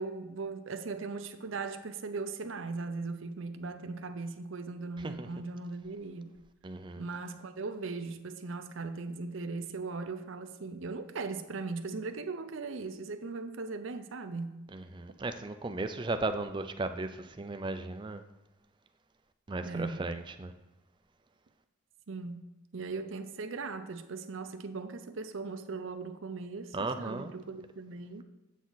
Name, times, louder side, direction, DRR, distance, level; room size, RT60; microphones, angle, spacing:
voice 1, 0.0-6.3 7.0-14.6 19.6-20.0 22.1-22.4 22.7-28.2, right 3 dB, 70° right, 9 dB, 0.6 m, -38 dB
voice 2, 6.6-7.0 14.7-18.2 19.5-20.5 26.7-27.3, right 2 dB, 20° right, 8 dB, 0.4 m, -36 dB
8.2 x 6.4 x 4.0 m, 1.0 s
head